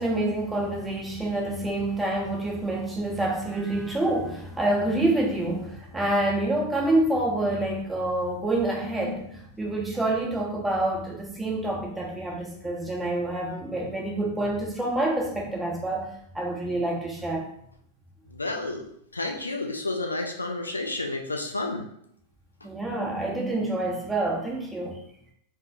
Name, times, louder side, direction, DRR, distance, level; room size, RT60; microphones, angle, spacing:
voice 1, 0.0-16.1 16.3-17.5 22.6-25.0, right 1 dB, 10° right, -2 dB, 1.1 m, -27 dB
voice 2, 18.3-18.8 19.1-21.8, left 2 dB, 80° left, 2 dB, 0.5 m, -30 dB
4.6 x 3.4 x 2.8 m, 0.70 s
figure-of-eight pair, 90°, 0 cm